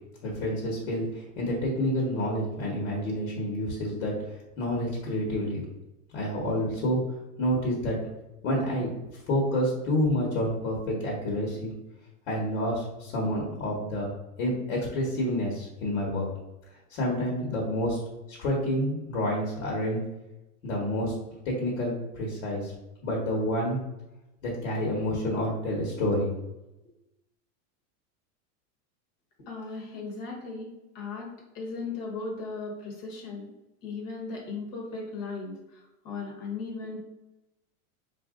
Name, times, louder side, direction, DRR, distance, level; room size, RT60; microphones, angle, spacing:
voice 1, 0.2-4.1 4.6-5.6 6.1-7.0 7.4-8.0 8.4-8.9 9.3-11.7 12.3-14.1 14.4-16.3 16.9-18.0 18.3-20.0 20.6-22.7 23.0-23.8 24.4-26.3, equal, 60° left, -2 dB, 1.3 m, -28 dB
voice 2, 29.5-30.7 30.9-33.5 33.8-37.0, left 4 dB, 35° left, -1 dB, 1.1 m, -37 dB
4.1 x 2.6 x 3.7 m, 0.96 s
supercardioid pair, 170°, 44 cm